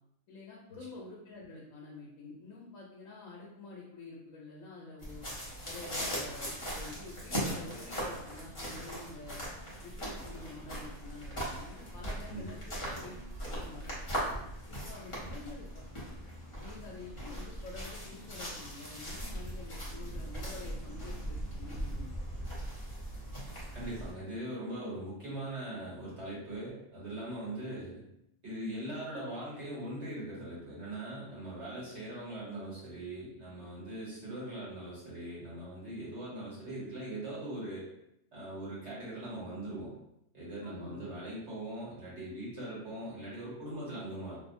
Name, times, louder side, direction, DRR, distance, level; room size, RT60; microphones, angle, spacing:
voice 1, 0.3-5.3 5.6-9.4 9.8-13.1 13.4-13.9 14.7-15.7 16.6-22.1 40.6-41.1, left 3 dB, 85° left, -3 dB, 1.0 m, -48 dB
sound 1, 5.0-24.1, equal, 30° left, 0.7 m, -39 dB
voice 2, 23.7-28.0 28.4-37.9 38.3-39.9 40.3-44.4, right 1 dB, 60° right, -7 dB, 1.4 m, -41 dB
2.8 x 2.0 x 2.5 m, 0.78 s
omnidirectional pair, 1.4 m